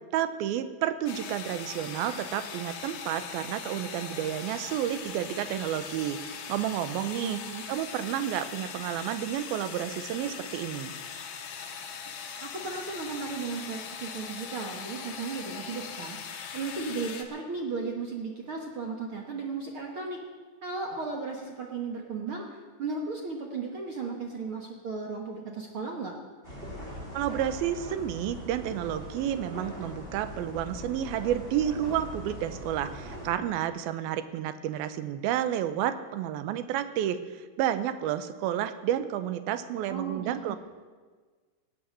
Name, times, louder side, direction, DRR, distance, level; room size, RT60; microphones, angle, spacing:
voice 1, 0.1-7.4 7.7-10.9 27.1-40.6, right 11 dB, 85° right, 12 dB, 2.5 m, -31 dB
sound 1, 1.1-17.2, left 6 dB, 60° left, 2.0 m, -40 dB
voice 2, 7.2-7.6 12.4-16.2 16.5-20.2 20.6-26.1 39.9-40.5, right 4 dB, 65° right, 1 dB, 1.2 m, -35 dB
sound 2, 26.4-33.3, equal, 15° right, 2.5 m, -41 dB
18.0 x 8.6 x 7.5 m, 1.4 s
omnidirectional pair, 4.3 m